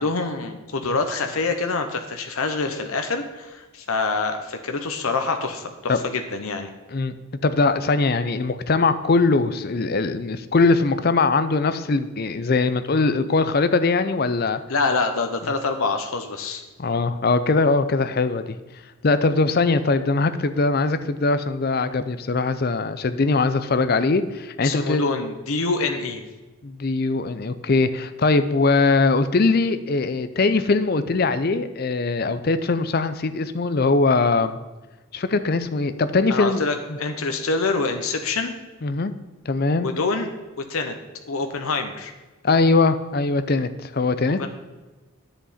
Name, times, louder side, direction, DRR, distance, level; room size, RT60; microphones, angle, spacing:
voice 1, 0.0-6.7 14.7-16.6 24.6-26.2 36.3-38.5 39.8-40.3 40.7-41.0 41.3-42.1 44.4-44.5, left 3 dB, 75° left, 6 dB, 0.8 m, -26 dB
voice 2, 7.4-14.6 16.8-18.6 19.0-25.0 26.6-34.6 35.1-36.6 38.8-39.1 39.5-40.0 42.4-44.4, left 3 dB, 45° left, 12 dB, 0.5 m, -21 dB
10.0 x 8.0 x 4.2 m, 1.2 s
head